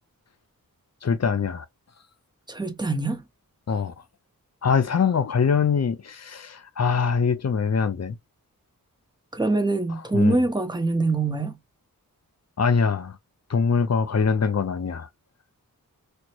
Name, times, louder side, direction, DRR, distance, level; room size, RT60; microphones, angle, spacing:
voice 1, 1.0-1.6 3.7-3.9 4.6-8.1 10.1-10.4 12.6-13.2 13.5-15.1, left 6 dB, 50° left, 0.7 m, -23 dB
voice 2, 2.5-3.2 9.3-11.6, right 2 dB, 15° right, 0.8 m, -24 dB
4.4 x 2.1 x 2.9 m
wide cardioid pair, 110°, 34 cm